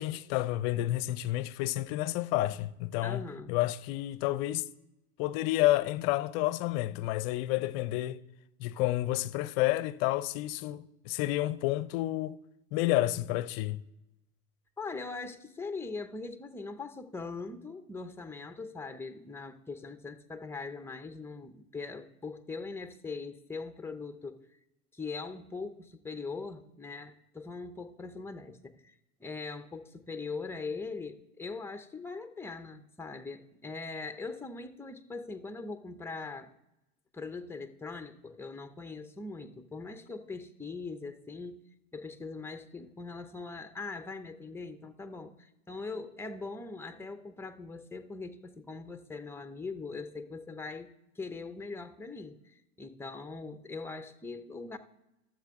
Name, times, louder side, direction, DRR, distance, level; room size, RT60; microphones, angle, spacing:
voice 1, 0.0-3.2 3.5-4.6 5.2-8.2 8.6-12.4 12.7-13.8, left 16 dB, 50° left, 0.6 m, -30 dB
voice 2, 3.0-3.5 14.8-24.4 24.9-28.9 29.2-36.5 37.1-41.6 41.9-50.9 51.2-54.8, left 4 dB, 5° left, 0.6 m, -41 dB
12.5 x 7.6 x 3.6 m
hypercardioid pair, 100°, 42 cm